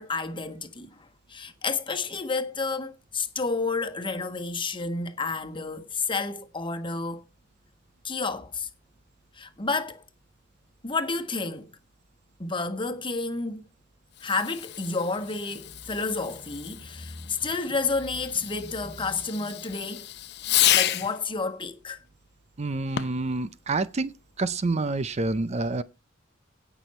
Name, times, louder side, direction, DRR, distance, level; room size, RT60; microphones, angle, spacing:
voice 1, 0.0-7.2 8.0-8.7 9.3-10.0 10.8-11.7 12.4-13.6 14.2-20.0 20.7-22.0, left 3 dB, 25° left, 1.4 m, -30 dB
Fireworks, 14.1-21.2 22.9-23.3, left 13 dB, 55° left, 0.6 m, -30 dB
voice 2, 22.6-24.1 24.4-25.8, right 3 dB, 35° right, 0.5 m, -27 dB
17.0 x 6.1 x 4.3 m
head